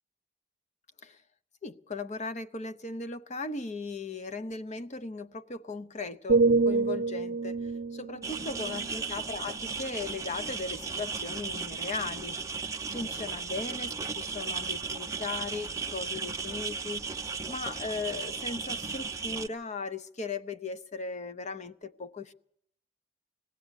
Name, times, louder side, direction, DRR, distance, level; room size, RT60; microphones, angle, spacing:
voice 1, 1.6-12.4 12.9-17.1 17.5-22.3, left 3 dB, 40° left, 0.7 m, -38 dB
sound 1, 6.3-10.2 10.7-11.0, right 3 dB, 75° right, 0.7 m, -28 dB
sound 2, 8.2-19.5, right 5 dB, 15° right, 0.7 m, -36 dB
20.0 x 16.5 x 8.1 m
head